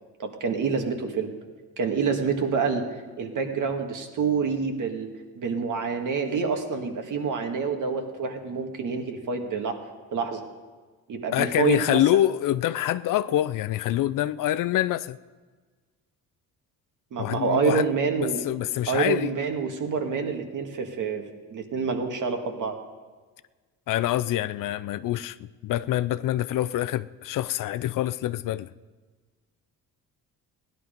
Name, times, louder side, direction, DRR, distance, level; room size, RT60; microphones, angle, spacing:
voice 1, 0.2-1.3 1.8-2.9 3.2-5.1 5.4-9.8 10.1-10.4 11.1-12.0 17.1-18.4 18.9-21.2 21.5-22.8, right 5 dB, 55° right, 2.0 m, -27 dB
voice 2, 11.3-15.2 17.2-17.9 18.2-19.3 23.9-28.7, left 13 dB, 60° left, 0.5 m, -26 dB
16.5 x 11.0 x 5.2 m
supercardioid pair, 85°, 37 cm